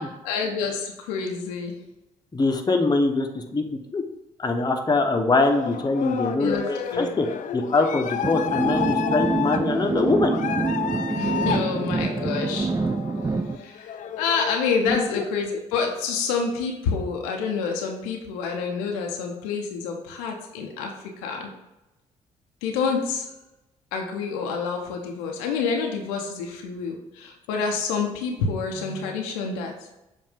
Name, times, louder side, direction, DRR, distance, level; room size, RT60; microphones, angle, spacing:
voice 1, 0.3-1.8 6.4-7.1 11.1-12.7 13.5-21.5 22.6-23.3 23.9-29.7, left 5 dB, 80° left, 1 dB, 0.7 m, -28 dB
voice 2, 2.3-3.6 3.9-4.0 4.4-7.3 7.5-10.3 14.9-15.0, left 3 dB, 25° left, 3 dB, 1.0 m, -23 dB
sound 1, 5.4-14.6, left 8 dB, 50° left, 0.5 m, -31 dB
sound 2, 8.2-13.6, right 4 dB, 20° right, 0.4 m, -26 dB
7.2 x 2.6 x 5.0 m, 0.94 s
hypercardioid pair, 45°, 17 cm